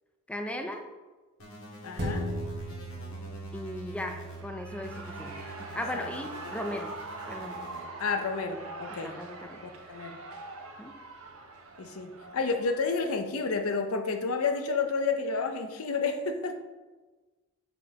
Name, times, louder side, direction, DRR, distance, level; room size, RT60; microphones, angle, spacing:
voice 1, 0.3-0.9 3.5-5.5 5.7-6.9 7.3-7.7 8.9-9.7 10.8-11.0, left 1 dB, 5° left, 4 dB, 0.4 m, -37 dB
sound 1, 1.4-4.4 4.8-7.8, equal, 70° left, 1.7 m, -48 dB
voice 2, 1.8-2.2 5.9-6.1 8.0-9.1 9.9-10.2 11.8-16.6, left 4 dB, 85° left, 6 dB, 0.7 m, -30 dB
sound 2, 2.0-10.8 11.2-11.3, right 1 dB, 55° right, 1.2 m, -41 dB
Shout / Cheering, 4.2-13.2, right 2 dB, 70° right, 0.9 m, -43 dB
6.8 x 5.2 x 2.9 m, 1.2 s
head